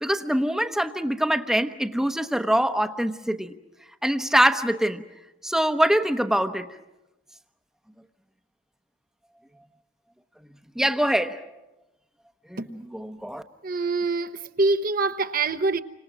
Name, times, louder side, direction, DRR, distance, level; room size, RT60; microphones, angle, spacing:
voice 1, 0.0-3.5 4.0-5.0 5.4-6.6 10.8-11.4 12.5-13.4, equal, 5° right, 1.0 m, -24 dB
voice 2, 13.6-15.8, right 3 dB, 45° right, 1.0 m, -25 dB
30.0 x 26.0 x 6.1 m
head